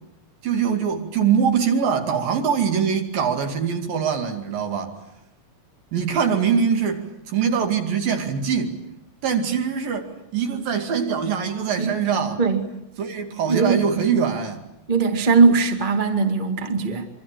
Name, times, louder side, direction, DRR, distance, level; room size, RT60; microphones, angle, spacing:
voice 1, 0.4-5.0 5.9-8.8 9.2-12.4 13.0-14.6, right 7 dB, 60° right, 4.0 m, -23 dB
voice 2, 13.5-13.8 14.9-17.1, right 4 dB, 20° right, 1.3 m, -19 dB
25.5 x 25.0 x 9.0 m
omnidirectional pair, 4.7 m